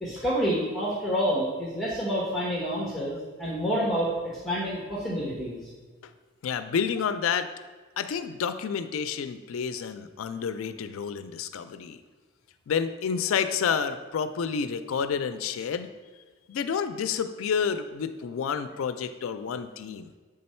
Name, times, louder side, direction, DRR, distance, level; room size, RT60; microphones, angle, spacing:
voice 1, 0.0-5.7, equal, ahead, -6 dB, 1.0 m, -28 dB
voice 2, 6.4-7.5 8.0-12.0 12.7-15.9 16.5-20.1, left 6 dB, 90° left, 10 dB, 0.4 m, -29 dB
7.7 x 3.7 x 4.3 m, 1.4 s
head